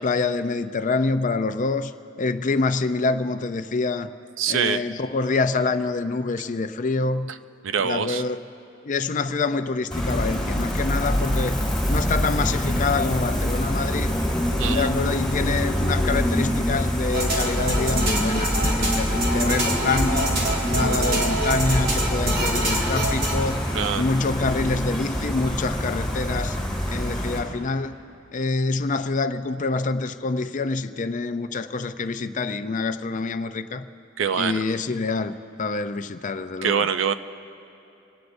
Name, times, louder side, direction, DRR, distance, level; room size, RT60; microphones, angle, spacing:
voice 1, 0.0-1.9 2.2-4.1 4.5-7.3 7.8-8.5 8.8-11.6 11.9-14.1 14.7-20.4 20.7-23.7 23.9-26.6 26.9-28.0 28.3-33.9 34.4-36.9, left 3 dB, 40° left, 11 dB, 0.5 m, -26 dB
voice 2, 4.4-4.8 7.6-8.2 14.6-14.9 23.7-24.0 34.2-34.6 36.6-37.1, right 7 dB, 70° right, 11 dB, 0.5 m, -24 dB
Gull seagull, 9.9-27.4, equal, ahead, 4.3 m, -25 dB
sound 1, 17.1-23.3, right 1 dB, 50° right, 2.8 m, -26 dB
25.0 x 19.0 x 2.6 m, 2.8 s
head